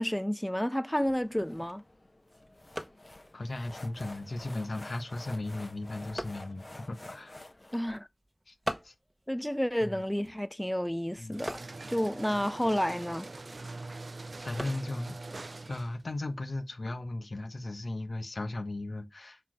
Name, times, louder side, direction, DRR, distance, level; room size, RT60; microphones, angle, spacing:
voice 1, 0.0-1.8 7.7-8.1 9.3-11.6 11.9-13.3, equal, 10° left, 0.4 m, -30 dB
sound 1, 1.0-8.0, left 1 dB, 45° left, 1.0 m, -49 dB
sound 2, 1.2-16.8, equal, 15° right, 1.1 m, -47 dB
voice 2, 3.3-7.5 8.5-8.6 8.8-8.9 9.8-10.0 11.2-11.4 14.4-15.2 15.7-19.4, left 2 dB, 80° left, 1.3 m, -36 dB
sound 3, 11.3-16.1, right 2 dB, 70° right, 0.3 m, -43 dB
7.1 x 4.3 x 4.7 m
wide cardioid pair, 50°, 0 cm